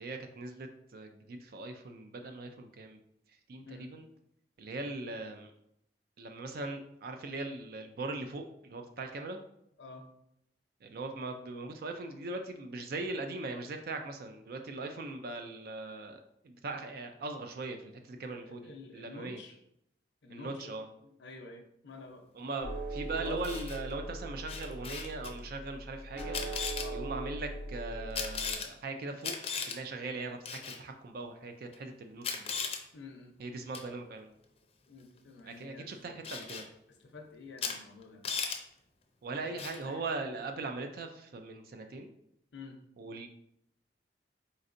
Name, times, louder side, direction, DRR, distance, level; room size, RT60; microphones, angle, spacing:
voice 1, 0.0-3.0 3.3-4.1 4.6-5.5 6.2-9.4 10.8-19.4 20.3-20.9 22.3-26.4 26.9-29.4 29.6-32.5 33.4-34.3 35.4-36.7 39.2-42.1 43.0-43.3, right 3 dB, 55° right, 5 dB, 0.4 m, -40 dB
voice 2, 18.4-19.6 20.2-20.8 21.0-22.2 23.0-23.6 26.8-27.0 32.9-33.3 34.9-36.2 37.0-38.2 39.3-40.0 42.5-42.8, left 3 dB, 90° left, 2 dB, 0.6 m, -49 dB
sound 1, 22.6-28.5, right 1 dB, 80° right, 1.7 m, -40 dB
Camera, 23.3-23.8 24.5-25.3 26.2-26.9 28.2-28.7 29.2-29.8 30.5-30.8 31.7-31.8 32.2-32.8 33.7-33.9 36.2-36.7 37.6-37.8 38.0-38.6 39.6-39.8, left 6 dB, 35° left, 0.5 m, -36 dB
4.2 x 3.9 x 2.5 m, 0.76 s
head